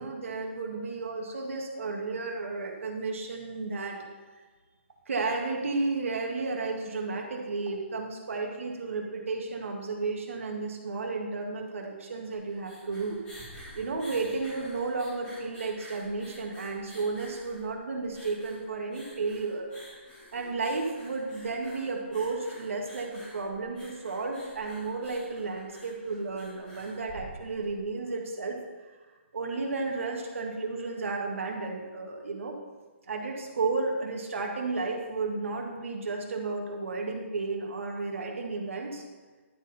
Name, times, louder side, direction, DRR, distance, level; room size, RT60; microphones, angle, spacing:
voice 1, 0.0-4.0 5.1-13.2 13.7-19.7 20.3-28.6 29.3-32.6 33.1-39.0, right 3 dB, 85° right, 1 dB, 1.8 m, -33 dB
sound 1, 12.5-27.8, equal, 15° left, 2.4 m, -50 dB
11.0 x 4.4 x 5.4 m, 1.3 s
hypercardioid pair, 165°, 7 cm